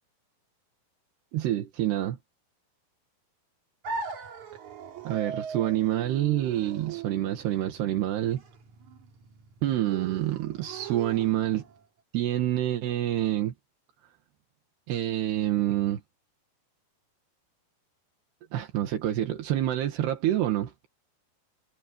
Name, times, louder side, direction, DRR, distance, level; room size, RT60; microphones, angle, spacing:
voice 1, 1.3-2.2 5.1-8.4 9.6-11.7 12.1-13.5 14.9-16.0 18.5-20.7, right 13 dB, 75° right, 3.7 m, -27 dB
sound 1, 3.8-11.8, right 5 dB, 50° right, 3.4 m, -40 dB
omnidirectional pair, 4.8 m